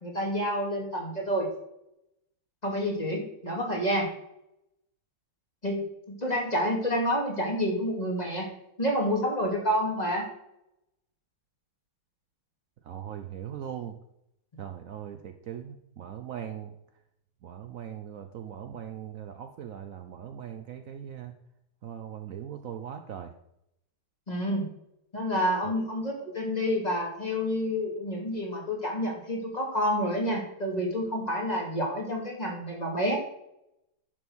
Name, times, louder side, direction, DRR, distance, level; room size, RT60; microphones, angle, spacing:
voice 1, 0.0-1.5 2.6-4.1 5.6-8.5 8.8-10.3 24.3-24.7 25.1-33.2, equal, 20° left, -1 dB, 2.5 m, -29 dB
voice 2, 12.8-14.0 14.6-16.7 17.4-21.4 21.8-23.3 25.6-25.7, right 9 dB, 85° right, 7 dB, 0.7 m, -40 dB
10.5 x 6.3 x 6.2 m, 0.80 s
omnidirectional pair, 2.3 m